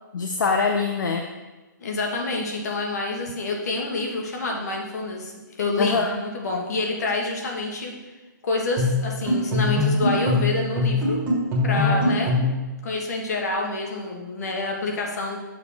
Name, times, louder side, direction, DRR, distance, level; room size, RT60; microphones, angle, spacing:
voice 1, 0.1-1.2 5.8-6.2 11.7-12.3, left 5 dB, 70° left, 3 dB, 0.7 m, -24 dB
voice 2, 1.8-5.3 5.6-7.9 8.4-11.2 11.6-12.4 12.8-15.4, left 2 dB, 55° left, 1 dB, 1.6 m, -27 dB
sound 1, 8.8-12.6, left 2 dB, 15° right, 1.5 m, -22 dB
7.2 x 6.2 x 3.5 m, 1.2 s
hypercardioid pair, 170°, 11 cm